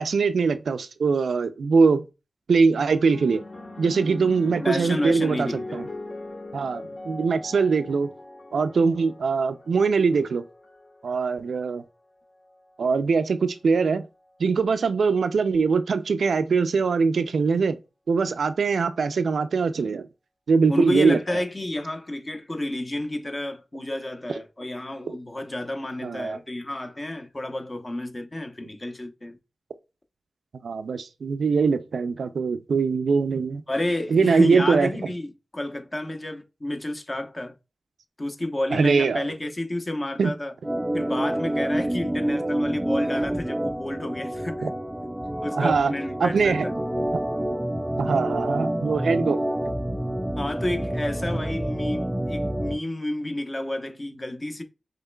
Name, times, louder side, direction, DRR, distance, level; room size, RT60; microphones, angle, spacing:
voice 1, 0.0-2.0 2.5-3.4 3.8-5.9 6.5-8.1 8.5-10.4 11.0-11.8 12.8-14.0 14.4-17.8 18.1-20.1 20.5-21.2 25.1-25.2 26.0-26.4 30.6-33.6 34.1-35.1 38.7-39.3 40.2-40.3 44.6-44.7 45.6-45.9 46.2-46.7 48.0-49.4, right 5 dB, 85° right, 0.3 m, -22 dB
sound 1, 2.9-11.5 12.4-12.8, left 2 dB, 55° left, 1.3 m, -40 dB
voice 2, 4.6-5.9 20.7-29.4 33.7-37.5 38.2-40.5 40.9-44.8 45.4-46.7 50.4-54.6, left 1 dB, 30° left, 0.8 m, -30 dB
Organ, 40.6-52.8, right 1 dB, 10° right, 0.3 m, -28 dB
5.5 x 3.2 x 2.2 m
cardioid pair, 60°, 0 cm